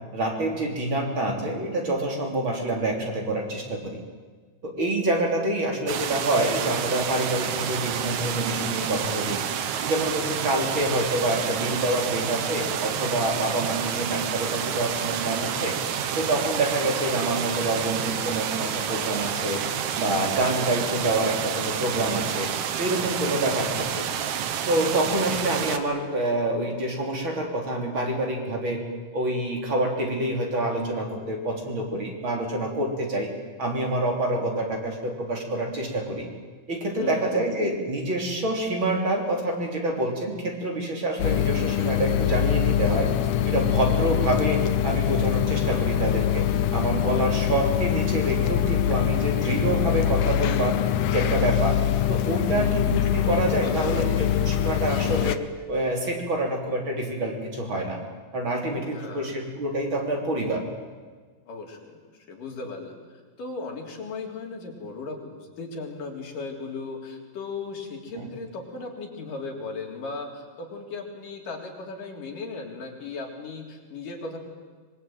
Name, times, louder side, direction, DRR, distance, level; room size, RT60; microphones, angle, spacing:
voice 1, 0.1-4.0 4.6-9.4 9.8-15.7 16.2-19.6 20.0-22.5 22.8-24.0 24.7-28.8 29.1-33.3 33.6-36.3 36.7-43.1 43.4-50.8 51.1-51.8 52.1-55.4 55.7-58.0 58.3-60.6 68.2-68.3, right 1 dB, 40° right, 1 dB, 4.2 m, -27 dB
sound 1, 5.9-25.8, right 8 dB, 65° right, 2.5 m, -29 dB
voice 2, 36.9-37.5 52.5-53.0 53.6-54.3 58.9-59.3 61.5-63.0 63.4-74.4, left 3 dB, 85° left, 0 dB, 5.2 m, -37 dB
sound 2, 41.2-55.4, left 11 dB, 70° left, 2.1 m, -24 dB
25.0 x 22.0 x 9.1 m, 1.5 s
omnidirectional pair, 3.7 m